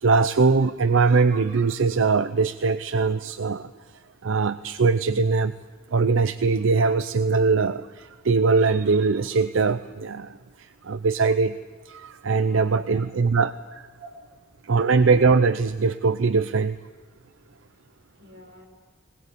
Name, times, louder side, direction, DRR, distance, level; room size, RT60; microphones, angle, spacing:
voice 1, 0.0-3.7 4.2-5.5 5.9-11.6 11.9-13.9 14.6-16.8, right 4 dB, 85° right, 13 dB, 0.6 m, -21 dB
voice 2, 17.4-18.7, right 2 dB, 60° right, 1 dB, 5.7 m, -48 dB
20.5 x 20.0 x 8.4 m, 1.5 s
head